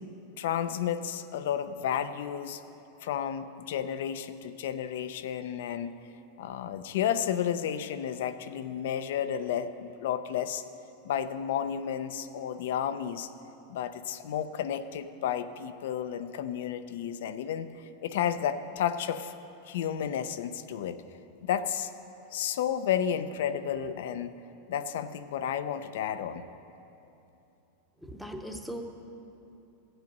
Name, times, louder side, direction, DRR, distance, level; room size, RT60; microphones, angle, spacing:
voice 1, 0.4-2.6 3.0-5.9 6.4-10.6 11.0-13.3 13.7-19.3 19.6-21.0 21.4-21.9 22.3-24.3 24.7-26.4, left 9 dB, 70° left, 12 dB, 0.6 m, -32 dB
voice 2, 28.0-28.8, equal, ahead, 4 dB, 0.8 m, -39 dB
15.5 x 7.9 x 5.4 m, 2.9 s
supercardioid pair, 155°, 0 cm